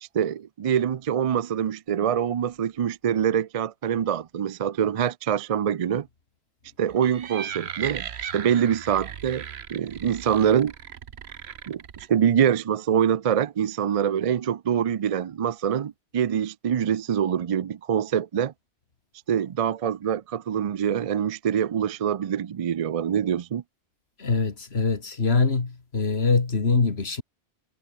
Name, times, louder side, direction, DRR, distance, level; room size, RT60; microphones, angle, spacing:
voice 1, 0.0-6.1 6.8-10.7 11.7-18.5 19.3-23.6, right 8 dB, 50° right, 0.4 m, -25 dB
sound 1, 6.9-12.1, right 8 dB, 90° right, 1.2 m, -37 dB
voice 2, 24.2-27.2, left 4 dB, 85° left, 2.4 m, -23 dB
omnidirectional pair, 1.0 m